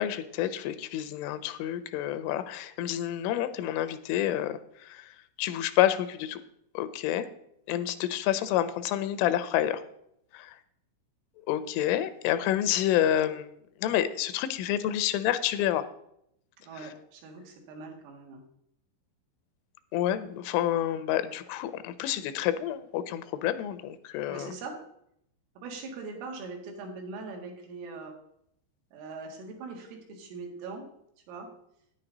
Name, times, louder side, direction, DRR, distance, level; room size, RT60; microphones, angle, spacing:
voice 1, 0.0-6.4 6.7-7.3 7.7-9.8 10.3-10.6 11.5-13.5 13.8-15.8 19.9-24.5, left 12 dB, 85° left, 12 dB, 3.1 m, -28 dB
voice 2, 16.7-18.4 24.3-24.8 25.6-28.2 28.9-30.9 31.3-31.5, right 3 dB, 85° right, 1 dB, 4.4 m, -41 dB
10.0 x 9.9 x 3.9 m, 0.74 s
omnidirectional pair, 5.6 m